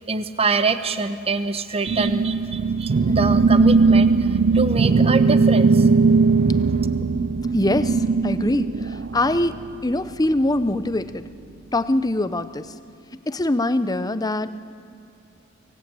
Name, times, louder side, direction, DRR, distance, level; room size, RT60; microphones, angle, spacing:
voice 1, 0.1-4.3 4.5-5.9, right 3 dB, 30° right, 11 dB, 0.9 m, -24 dB
sound 1, 1.9-9.6, right 4 dB, 50° right, 0.5 m, -19 dB
voice 2, 7.5-11.3 11.7-12.7 13.3-14.5, left 1 dB, 20° left, 13 dB, 0.6 m, -23 dB
24.0 x 18.0 x 8.9 m, 2.6 s
head